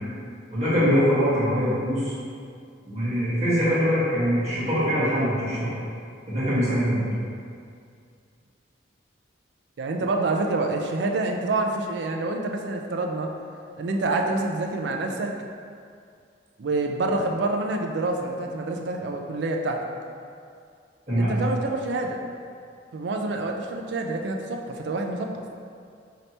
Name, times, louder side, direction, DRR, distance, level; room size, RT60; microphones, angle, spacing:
voice 1, 0.5-2.1 2.8-5.7 6.3-7.1 21.1-21.3, equal, 35° right, -11 dB, 1.4 m, -23 dB
voice 2, 9.8-13.3 13.8-15.3 16.6-19.8 21.2-22.2 22.9-25.4, right 2 dB, 65° right, 2 dB, 0.4 m, -27 dB
3.2 x 2.9 x 4.1 m, 2.3 s
head